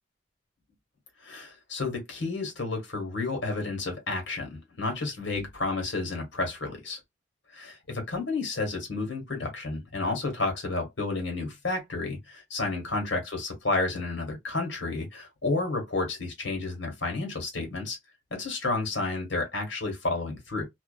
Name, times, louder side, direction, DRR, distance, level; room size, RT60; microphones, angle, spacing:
voice 1, 1.2-7.0 7.5-18.0 18.3-20.7, left 3 dB, 80° left, 1.2 m, -31 dB
2.4 x 2.3 x 2.3 m
head